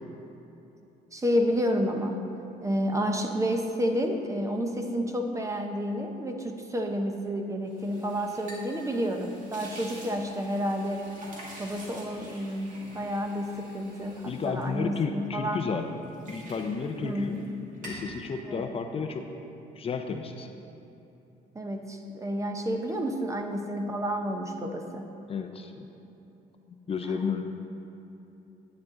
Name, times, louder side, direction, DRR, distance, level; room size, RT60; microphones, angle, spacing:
voice 1, 1.1-2.2 2.6-11.1 11.6-15.6 17.0-17.5 18.5-18.7 21.5-25.1, equal, 20° right, 4 dB, 0.8 m, -30 dB
sound 1, 7.7-15.4 15.8-17.5 17.7-18.1, right 1 dB, 50° right, 2.2 m, -47 dB
voice 2, 14.3-15.9 16.3-17.4 17.8-19.2 19.8-20.5 25.3-25.9 26.7-27.4, left 5 dB, 35° left, 5 dB, 0.6 m, -32 dB
10.5 x 8.5 x 3.8 m, 2.9 s
cardioid pair, 110°, 17 cm